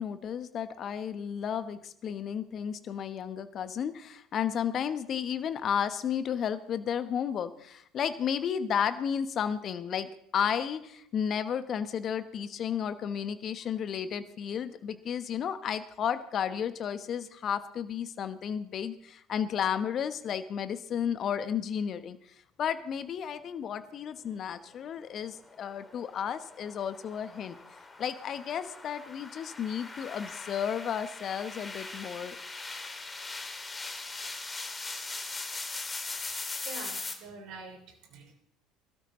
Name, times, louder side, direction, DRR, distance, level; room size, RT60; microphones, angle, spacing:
voice 1, 0.0-22.2 22.6-27.6 28.0-32.4, left 8 dB, 45° left, 12 dB, 1.0 m, -33 dB
sound 1, 25.1-37.1, left 3 dB, 20° left, 2.5 m, -41 dB
voice 2, 36.2-38.3, right 4 dB, 60° right, 4 dB, 3.0 m, -46 dB
22.0 x 13.0 x 3.1 m, 0.71 s
hypercardioid pair, 65°, 0 cm